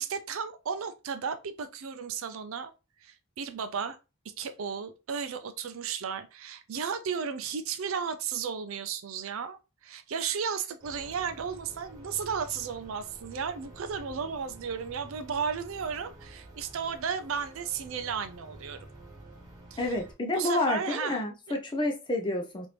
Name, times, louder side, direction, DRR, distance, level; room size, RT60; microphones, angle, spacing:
voice 1, 0.0-2.7 3.0-4.0 4.4-18.9 19.7-19.9 20.3-21.2 21.5-21.6, right 6 dB, 65° right, 0.4 m, -34 dB
sound 1, 10.8-20.1, right 1 dB, 15° right, 0.9 m, -49 dB
voice 2, 19.8-22.7, left 2 dB, 20° left, 0.5 m, -29 dB
3.0 x 2.6 x 3.2 m
head